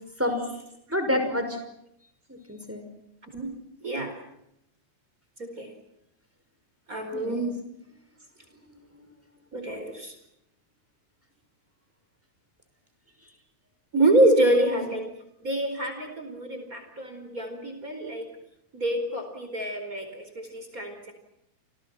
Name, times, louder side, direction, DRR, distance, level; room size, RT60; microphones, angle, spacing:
voice 1, 0.2-0.6 0.9-1.6 2.3-2.8 7.1-7.4 14.5-14.9, left 1 dB, 5° right, 6 dB, 5.5 m, -29 dB
voice 2, 3.8-4.2 5.4-5.7 6.9-7.6 9.5-10.1 13.9-15.0 15.4-18.2 18.7-21.1, right 1 dB, 25° right, 6 dB, 4.8 m, -26 dB
30.0 x 27.5 x 6.0 m, 0.79 s
omnidirectional pair, 3.4 m